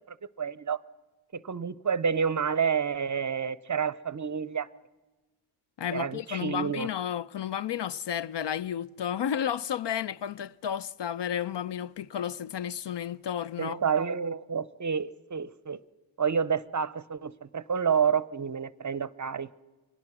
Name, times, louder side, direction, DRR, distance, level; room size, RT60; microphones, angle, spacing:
voice 1, 0.4-0.8 1.3-4.7 5.9-6.9 13.6-15.8 16.2-19.6, right 6 dB, 35° right, 0.6 m, -29 dB
voice 2, 5.8-13.8, left 9 dB, 60° left, 0.6 m, -32 dB
23.5 x 18.5 x 6.1 m
wide cardioid pair, 80°, 49 cm